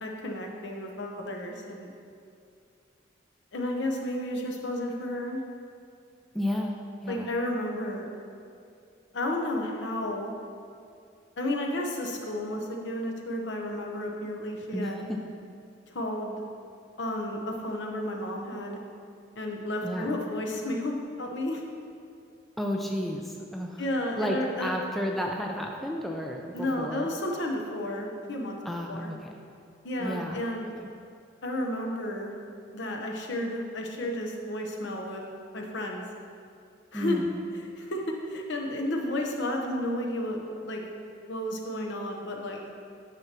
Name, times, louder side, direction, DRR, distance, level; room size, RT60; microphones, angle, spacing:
voice 1, 0.0-1.9 3.5-5.4 7.1-8.1 9.1-10.3 11.4-15.1 15.9-16.4 17.0-18.8 19.4-21.6 23.8-24.7 26.5-28.6 28.9-29.1 29.8-30.7 31.4-32.3 32.7-35.2 35.5-36.0 36.9-37.2 37.5-40.8 41.3-42.6, left 1 dB, 65° left, 1 dB, 0.9 m, -32 dB
voice 2, 6.3-6.7 7.0-7.3 14.7-15.2 19.8-20.2 22.6-23.8 24.2-27.1 28.7-29.3 30.0-30.4 36.9-37.4, equal, ahead, 0 dB, 0.3 m, -32 dB
9.7 x 5.9 x 2.9 m, 2.4 s
head